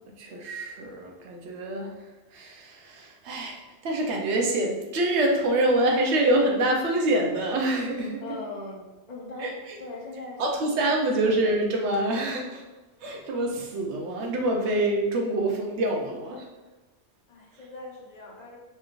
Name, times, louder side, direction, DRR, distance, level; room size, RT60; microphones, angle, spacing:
voice 1, 0.2-3.6 3.8-8.2 9.4-9.8 10.4-12.6 13.0-16.5, right 1 dB, 90° right, 0 dB, 1.0 m, -26 dB
voice 2, 8.2-10.4 17.3-18.6, left 2 dB, 45° left, -3 dB, 0.8 m, -40 dB
4.4 x 3.2 x 2.4 m, 1.1 s
omnidirectional pair, 1.1 m